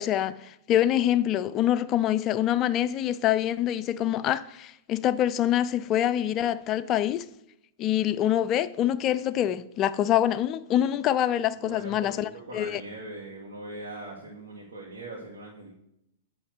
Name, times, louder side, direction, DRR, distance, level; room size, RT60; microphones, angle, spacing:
voice 1, 0.0-7.2 7.8-12.8, left 11 dB, 30° left, 0.3 m, -25 dB
voice 2, 11.5-15.7, right 2 dB, 60° right, 1.7 m, -41 dB
9.0 x 3.1 x 6.4 m
figure-of-eight pair, 105°, 0 cm